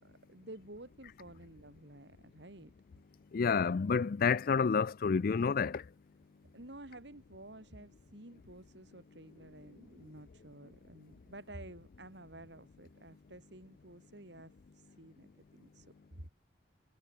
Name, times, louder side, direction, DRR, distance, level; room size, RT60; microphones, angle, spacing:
voice 1, 0.0-2.7 6.5-15.3 15.5-16.3, right 1 dB, 70° right, 5.2 m, -52 dB
voice 2, 3.3-5.8, left 5 dB, 50° left, 0.4 m, -29 dB
head